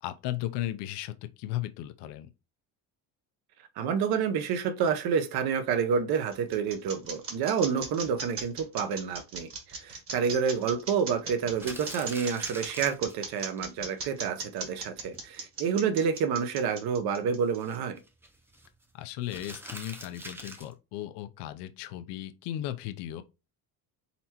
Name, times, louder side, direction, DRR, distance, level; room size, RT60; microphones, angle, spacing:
voice 1, 0.0-2.3 18.9-23.2, left 13 dB, 90° left, 0.6 m, -36 dB
voice 2, 3.8-18.0, right 6 dB, 65° right, 0.8 m, -29 dB
sound 1, 5.9-17.8, right 4 dB, 35° right, 1.3 m, -38 dB
sound 2, 11.5-13.6 13.9-14.0 14.3-14.4 14.6-14.7 15.1-15.4 17.5-18.7 19.2-20.7, right 1 dB, 5° right, 0.5 m, -44 dB
4.4 x 4.1 x 2.8 m
cardioid pair, 160°, 39 cm